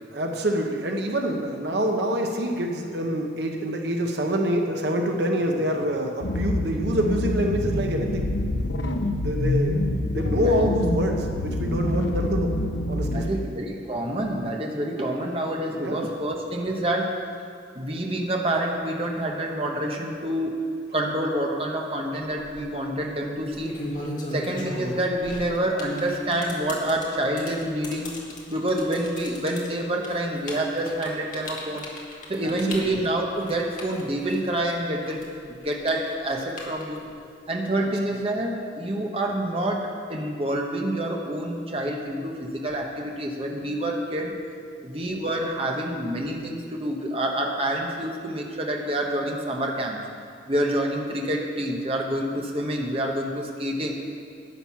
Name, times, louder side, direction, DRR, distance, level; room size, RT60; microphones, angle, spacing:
voice 1, 0.1-8.3 9.2-9.8 10.1-12.5 12.9-13.3 15.7-16.0 32.4-32.9, equal, 60° right, 3 dB, 1.0 m, -26 dB
sound 1, 6.2-13.3, left 1 dB, 75° left, 0.8 m, -26 dB
voice 2, 10.3-10.7 11.7-11.9 13.1-17.2 17.7-20.6 20.9-23.8 24.3-28.1 28.5-31.9 32.3-37.0 37.5-44.3 44.8-50.0 50.5-53.9, right 1 dB, 30° right, 0 dB, 1.1 m, -27 dB
sound 2, 22.2-22.6 23.3-34.7 35.0-37.1, left 1 dB, 40° left, 1.9 m, -37 dB
12.0 x 9.1 x 5.8 m, 2.3 s
head